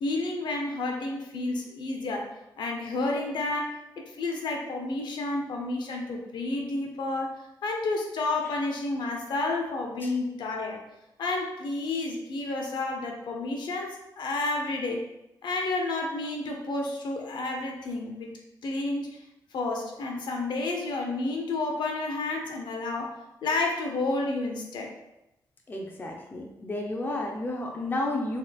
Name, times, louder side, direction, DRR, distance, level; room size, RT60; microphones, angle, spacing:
voice 1, 0.0-2.3 2.6-3.7 4.0-7.3 7.6-10.8 11.2-15.0 15.4-18.3 18.6-19.2 19.5-23.1 23.4-24.9, left 2 dB, 75° left, 1 dB, 0.7 m, -30 dB
voice 2, 25.7-28.4, left 2 dB, 25° left, 1 dB, 0.5 m, -31 dB
4.0 x 3.1 x 2.4 m, 0.90 s
cardioid pair, 115°, 8 cm